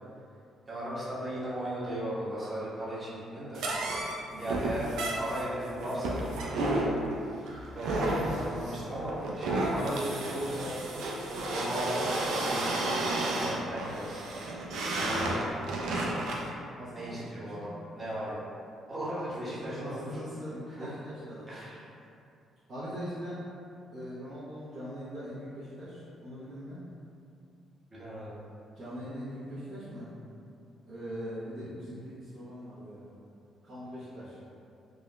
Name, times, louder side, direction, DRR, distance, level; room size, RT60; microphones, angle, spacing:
voice 1, 0.7-3.6 4.4-6.3 7.7-10.7 11.5-12.2 12.4-14.2 14.9-15.9 16.9-18.4 18.9-20.1 20.7-20.9 21.5-21.9 27.9-28.3, right 1 dB, 20° right, -9 dB, 1.1 m, -37 dB
sound 1, 3.5-16.5, right 1 dB, 80° right, 0.4 m, -32 dB
voice 2, 4.3-4.7 16.8-17.6 19.4-21.5 22.7-23.4 23.9-26.8 28.7-30.2 30.9-33.2 33.6-34.4, equal, 60° right, -14 dB, 0.9 m, -41 dB
3.5 x 2.4 x 2.2 m, 2.6 s
cardioid pair, 90°, 0 cm